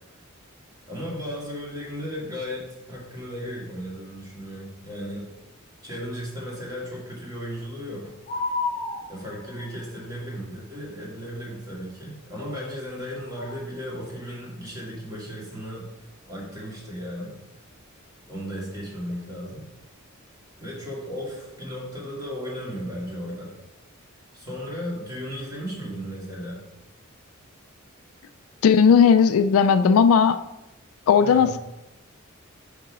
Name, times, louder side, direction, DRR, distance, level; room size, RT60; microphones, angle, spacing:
voice 1, 0.9-5.3 5.8-8.4 9.1-15.9 16.3-17.4 18.3-19.7 20.6-23.5 24.3-26.6 31.2-31.6, equal, 20° right, -5 dB, 2.0 m, -35 dB
sound 1, 8.3-9.7 13.4-13.6, left 3 dB, 45° left, 0.8 m, -30 dB
voice 2, 28.6-30.4 31.1-31.6, left 6 dB, 75° left, 11 dB, 0.3 m, -16 dB
5.9 x 3.7 x 6.0 m, 0.95 s
head